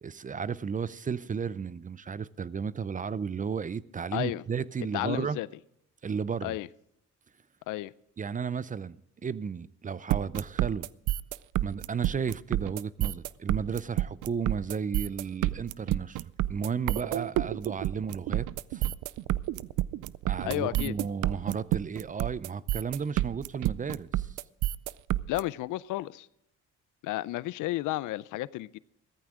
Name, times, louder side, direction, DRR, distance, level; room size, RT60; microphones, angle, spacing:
voice 1, 0.0-5.4 6.0-6.6 8.2-9.0 9.2-10.9 11.6-16.2 16.5-18.9 20.3-24.3, right 6 dB, 25° right, 0.5 m, -33 dB
voice 2, 4.1-4.4 4.9-5.5 6.4-6.7 7.7-7.9 20.4-21.0 25.3-26.3 27.0-28.8, left 17 dB, 85° left, 0.5 m, -32 dB
sound 1, 10.1-25.4, right 15 dB, 85° right, 0.5 m, -29 dB
16.0 x 13.5 x 3.7 m
cardioid pair, 90°, 30 cm